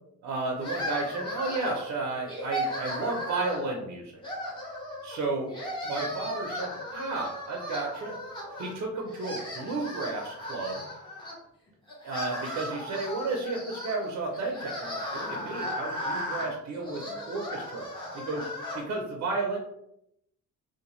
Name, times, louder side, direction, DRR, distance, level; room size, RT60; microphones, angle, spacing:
voice 1, 0.2-4.1 5.0-5.6 5.8-8.1 8.6-10.8 12.0-17.9 18.1-18.5 18.7-19.6, right 3 dB, 60° right, -1 dB, 0.6 m, -33 dB
sound 1, 0.6-1.9 2.3-3.7 4.2-5.2 5.5-8.8 9.1-11.3 11.9-18.8, equal, 15° left, 0.9 m, -36 dB
2.6 x 2.2 x 3.0 m, 0.78 s
cardioid pair, 130°, 31 cm